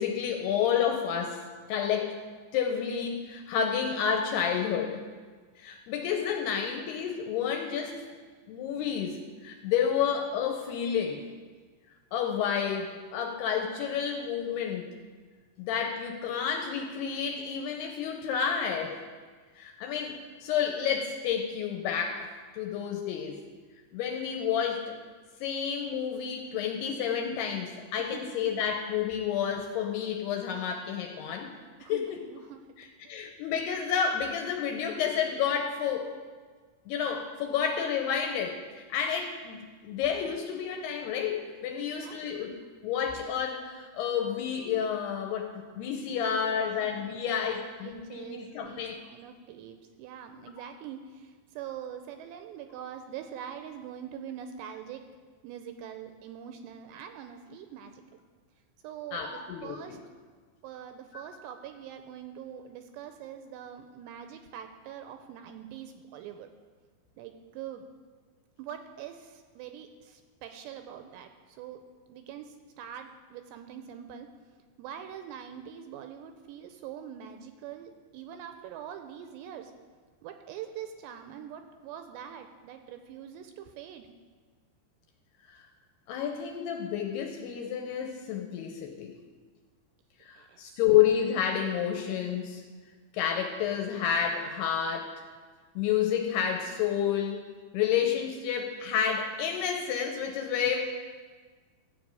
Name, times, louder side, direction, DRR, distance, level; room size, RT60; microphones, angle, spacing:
voice 1, 0.0-1.4 1.7-2.2 2.5-5.0 5.6-8.0 8.5-11.2 12.1-14.9 15.6-19.0 19.6-22.3 22.5-23.4 23.9-24.9 25.4-31.5 31.9-32.2 32.8-36.1 36.9-42.5 42.8-49.0 59.1-60.0 61.1-61.2 85.5-85.7 86.1-89.2 90.2-92.6 93.1-95.1 95.8-97.4 97.7-100.8, left 8 dB, 80° left, 3 dB, 2.5 m, -30 dB
voice 2, 28.0-28.4 31.8-32.6 41.8-42.6 46.1-55.0 55.4-58.2 58.8-60.0 60.6-66.5 67.2-67.9 68.6-74.3 74.8-79.7 80.2-84.1 90.4-90.6 100.6-100.8, right 9 dB, 85° right, 7 dB, 2.6 m, -44 dB
13.0 x 5.2 x 8.2 m, 1.5 s
omnidirectional pair, 5.3 m